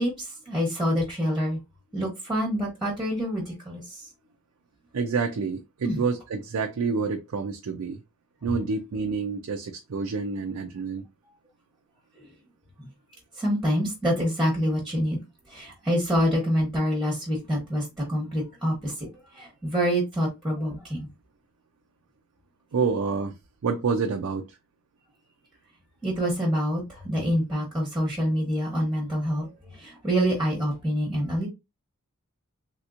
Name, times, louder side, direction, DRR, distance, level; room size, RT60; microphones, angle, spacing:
voice 1, 0.0-1.6 1.9-4.0 5.8-6.0 12.2-12.3 12.8-12.9 13.4-15.2 15.5-19.1 19.3-21.1 26.0-31.5, equal, ahead, 1.0 m, -26 dB
voice 2, 4.9-8.0 8.4-11.0 22.7-23.4 23.6-24.6, right 5 dB, 90° right, 0.5 m, -28 dB
3.3 x 2.8 x 2.4 m
head